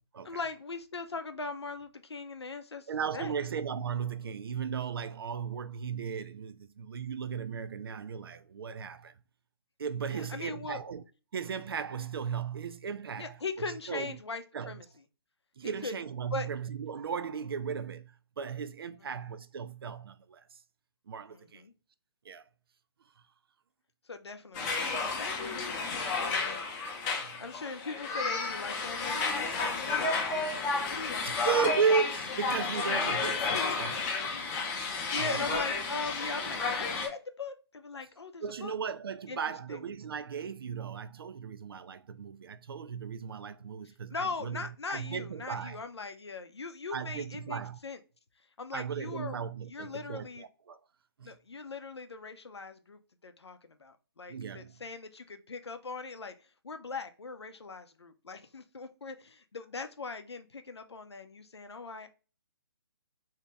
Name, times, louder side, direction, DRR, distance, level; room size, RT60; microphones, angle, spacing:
voice 1, 0.2-3.3 10.1-10.8 13.2-14.8 15.6-16.0 16.3-16.5 19.1-19.2 21.3-21.7 24.1-25.7 26.2-26.6 27.4-29.7 30.0-30.5 30.9-31.5 33.4-33.8 34.3-34.6 35.1-38.8 39.3-39.4 39.7-39.8 44.1-48.0 48.6-50.5 51.2-56.3 56.6-62.1, left 4 dB, 80° left, 0.6 m, -40 dB
voice 2, 2.9-9.1 9.8-11.0 11.3-14.1 14.5-14.8 15.6-20.6 21.1-21.6 22.2-22.4 26.3-26.4 27.2-27.4 31.2-34.4 35.1-35.6 38.4-45.8 46.9-47.8 48.7-50.8 51.2-51.4 54.3-54.7, right 6 dB, 60° right, 0.4 m, -36 dB
sound 1, 24.5-37.1, left 4 dB, 20° left, 0.6 m, -32 dB
2.9 x 2.8 x 3.3 m
figure-of-eight pair, 140°, 14 cm